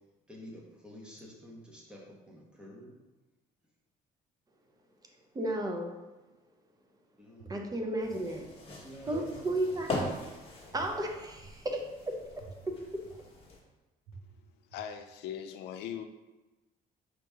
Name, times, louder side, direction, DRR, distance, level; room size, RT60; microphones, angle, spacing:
voice 1, 0.3-3.0 7.2-7.5 8.6-9.6, equal, 5° right, -3 dB, 1.2 m, -50 dB
voice 2, 5.3-5.9 7.5-8.4 9.1-10.1 10.7-11.8 12.7-12.8, right 1 dB, 20° right, 2 dB, 0.6 m, -33 dB
sound 1, 7.4-7.5 8.0-8.1 9.1-9.2 9.7-9.8 10.7-10.8 11.4-11.5 12.4-12.5 13.0-13.1 14.0-14.1 14.7-14.8, right 7 dB, 65° right, 1.4 m, -54 dB
sound 2, 8.0-13.6, left 2 dB, 35° left, 1.4 m, -41 dB
voice 3, 14.7-16.1, left 9 dB, 85° left, 7 dB, 0.5 m, -40 dB
5.0 x 3.0 x 3.5 m, 1.1 s
cardioid pair, 110°, 17 cm